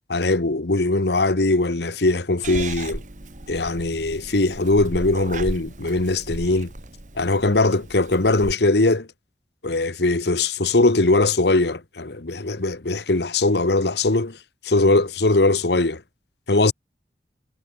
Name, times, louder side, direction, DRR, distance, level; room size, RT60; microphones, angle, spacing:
voice 1, 0.1-3.0 3.5-6.7 7.2-9.1 9.6-14.4 14.6-16.0 16.5-16.7, left 2 dB, 75° left, 1.3 m, -20 dB
Purr / Meow, 2.4-8.5, right 2 dB, 45° right, 1.8 m, -35 dB
head